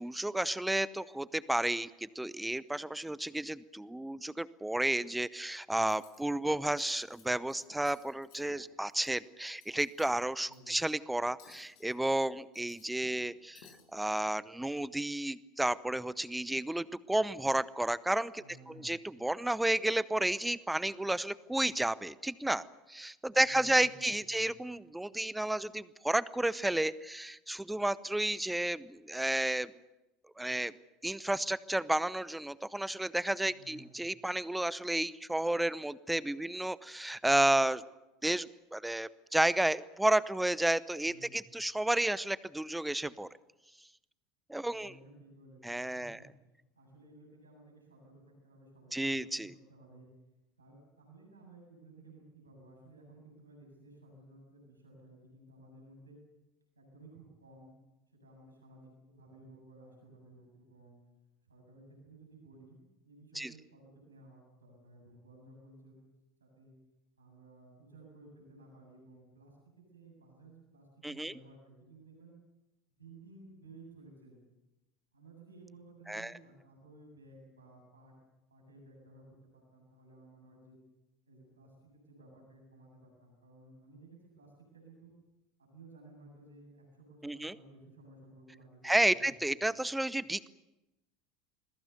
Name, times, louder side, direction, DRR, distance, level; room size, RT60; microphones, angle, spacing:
voice 1, 0.0-13.7 13.9-18.4 18.8-22.6 22.9-29.7 30.4-30.7 31.0-37.8 38.2-43.3 44.5-44.9 45.6-46.2 48.9-49.5 63.4-63.5 71.0-71.3 76.1-76.3 87.2-87.5 88.8-90.5, right 1 dB, 5° right, 19 dB, 0.8 m, -32 dB
Cutlery silverware, 5.8-6.2 6.6-7.2 7.5-9.1 9.4-10.2 10.5-10.8 11.4-12.0 12.4-13.3 13.6-13.8, left 8 dB, 55° left, 6.2 m, -59 dB
voice 2, 10.5-10.8 18.4-18.9 23.3-24.5 33.5-33.9 41.1-41.4 44.6-50.1 50.6-56.2 56.8-57.8 58.2-61.0 61.4-66.0 66.4-66.7 67.2-72.3 73.0-74.4 75.1-78.1 78.5-79.3 79.5-80.8 81.3-85.1 85.7-89.4, right 2 dB, 80° right, 0 dB, 7.5 m, -56 dB
28.0 x 21.5 x 6.9 m, 0.96 s
figure-of-eight pair, 70°, 0 cm